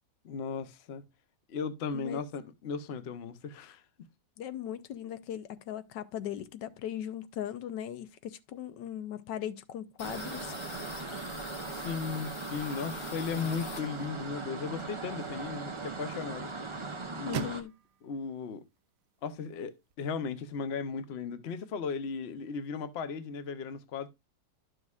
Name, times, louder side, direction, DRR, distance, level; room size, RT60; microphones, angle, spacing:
voice 1, 0.2-1.0 1.5-4.1 11.7-16.5 17.1-17.6 18.0-18.6 19.2-24.1, left 5 dB, 50° left, 0.9 m, -36 dB
voice 2, 4.4-10.5 17.3-17.7, left 10 dB, 85° left, 1.3 m, -38 dB
sound 1, 10.0-14.3 14.7-16.0 16.3-16.4 16.7-17.4, left 6 dB, 65° left, 1.5 m, -47 dB
sound 2, 10.0-17.6, right 4 dB, 45° right, 0.3 m, -39 dB
sound 3, 13.8-19.9, right 10 dB, 65° right, 1.0 m, -46 dB
12.0 x 6.4 x 2.4 m
omnidirectional pair, 1.9 m